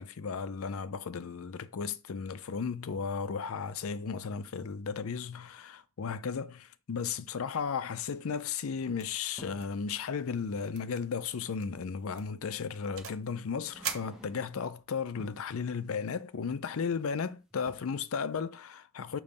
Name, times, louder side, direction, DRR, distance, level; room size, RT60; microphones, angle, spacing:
voice 1, 0.0-19.2, left 6 dB, 70° left, 0.5 m, -35 dB
sound 1, 8.8-9.8 11.4-11.5 12.7-12.9 13.4-14.7 15.0-15.6 16.9-17.3 17.5-17.8, equal, 5° right, 0.9 m, -54 dB
sound 2, 9.0-9.3 9.6-9.9 10.1-10.2 10.7-11.0 11.4-11.7 12.2-13.3 13.8-14.8, right 7 dB, 70° right, 0.9 m, -41 dB
6.7 x 3.0 x 5.3 m
head